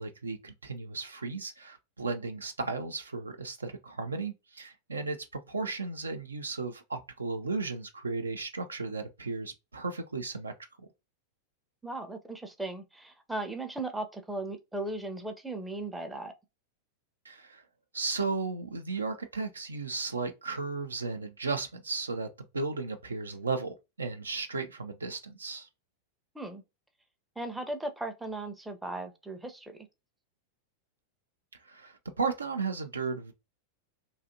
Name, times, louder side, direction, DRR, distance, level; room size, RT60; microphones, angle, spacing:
voice 1, 0.0-5.2 5.5-10.5 10.8-10.9 17.3-17.6 17.9-22.3 22.5-25.7 31.6-33.3, right 4 dB, 75° right, 0.4 m, -35 dB
voice 2, 11.8-16.3 26.3-26.6 27.4-29.9, right 2 dB, 5° right, 0.5 m, -37 dB
2.6 x 2.4 x 2.6 m
figure-of-eight pair, 90°, 0 cm